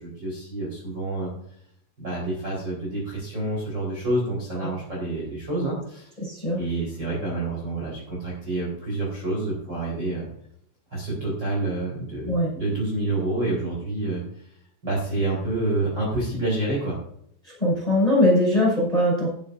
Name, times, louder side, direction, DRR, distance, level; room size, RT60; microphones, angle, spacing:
voice 1, 0.0-1.3 2.0-6.1 6.6-10.2 10.9-14.2 14.8-17.0, right 2 dB, 20° right, -4 dB, 4.4 m, -28 dB
voice 2, 6.2-6.6 12.3-12.5 17.6-19.3, left 1 dB, 5° left, -4 dB, 5.4 m, -21 dB
14.5 x 12.0 x 2.7 m, 0.69 s
omnidirectional pair, 5.8 m